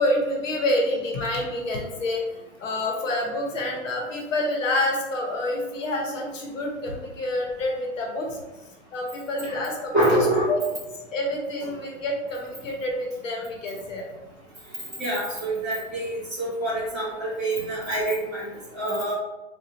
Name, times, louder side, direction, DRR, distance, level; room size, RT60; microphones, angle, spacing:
voice 1, 0.0-8.4 8.9-10.0 10.5-10.6 11.1-14.0, left 1 dB, 75° left, 0 dB, 1.0 m, -27 dB
voice 2, 9.9-10.5 15.0-19.1, right 1 dB, ahead, -16 dB, 0.8 m, -26 dB
3.9 x 2.4 x 2.8 m, 1.1 s
hypercardioid pair, 180°, 38 cm